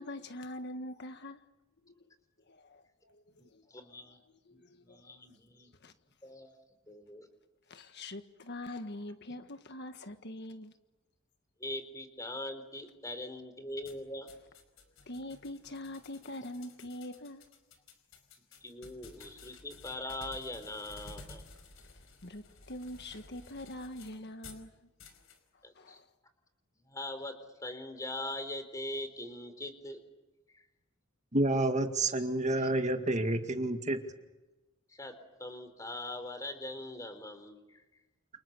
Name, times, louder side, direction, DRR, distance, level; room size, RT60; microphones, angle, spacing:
voice 1, 0.0-1.4 1.9-2.0 2.5-3.2 3.5-3.6 4.5-5.0 5.8-5.9 7.7-10.7 15.1-17.4 22.2-24.7 25.8-26.1, left 1 dB, 55° left, 1.6 m, -43 dB
voice 2, 3.4-4.2 4.5-5.7 6.2-6.5 6.9-7.3 11.6-14.3 18.6-21.4 25.6-26.0 26.9-27.3 27.6-30.0 30.5-30.6 32.6-32.7 34.9-35.1 35.4-37.8, left 1 dB, 15° left, 4.0 m, -42 dB
sound 1, 13.8-24.7 25.0-25.4, left 3 dB, 70° left, 5.2 m, -54 dB
voice 3, 31.3-34.0, right 2 dB, 35° right, 2.0 m, -29 dB
29.5 x 29.5 x 6.9 m
head